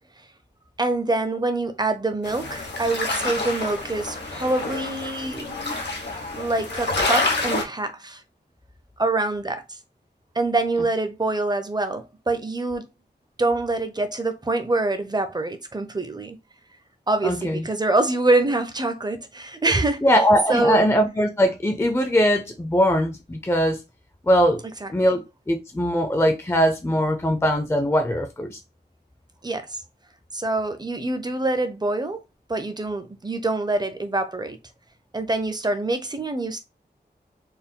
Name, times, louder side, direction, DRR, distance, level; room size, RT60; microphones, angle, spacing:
voice 1, 0.8-5.5 6.4-8.2 9.0-9.8 10.3-12.9 13.4-16.4 17.1-20.1 20.5-20.8 24.8-25.2 29.4-29.8 30.3-32.2 32.5-34.6 35.1-36.6, right 2 dB, 25° right, 0.7 m, -25 dB
sound 1, 2.2-7.6, left 2 dB, 90° left, 1.1 m, -28 dB
voice 2, 17.2-17.6 20.0-23.8 24.3-24.6 24.9-25.2 25.5-28.6, equal, 15° left, 0.6 m, -21 dB
4.4 x 2.2 x 3.6 m
wide cardioid pair, 100°, 17 cm